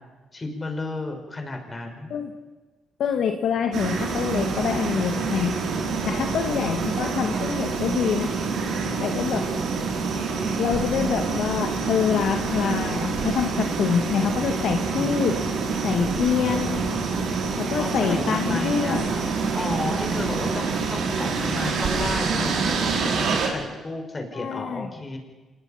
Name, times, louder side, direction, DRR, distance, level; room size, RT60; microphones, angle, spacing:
voice 1, 0.3-2.1 6.1-6.5 15.0-15.3 17.8-19.1 19.5-25.2, left 2 dB, 25° left, 4 dB, 5.5 m, -33 dB
voice 2, 3.0-5.5 6.0-8.3 9.0-9.5 10.6-15.4 15.8-16.8 17.6-19.1 24.3-24.9, left 7 dB, 70° left, 5 dB, 1.8 m, -25 dB
sound 1, 3.7-23.5, right 4 dB, 75° right, 4.9 m, -26 dB
26.5 x 21.5 x 5.8 m, 1.3 s
cardioid pair, 90°, 0 cm